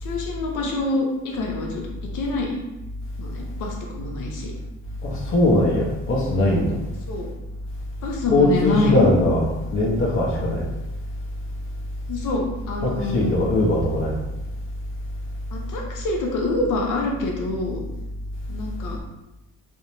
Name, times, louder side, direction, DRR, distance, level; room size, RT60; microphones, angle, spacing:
voice 1, 0.0-1.8 2.1-2.6 3.2-4.5 7.1-7.3 8.0-9.1 12.1-13.4 15.5-17.8 18.5-19.0, left 2 dB, 85° left, 0 dB, 0.6 m, -26 dB
voice 2, 5.0-6.8 8.2-10.7 12.8-14.2, left 1 dB, 45° left, -4 dB, 0.6 m, -20 dB
2.5 x 2.0 x 2.9 m, 0.95 s
cardioid pair, 90°, 30 cm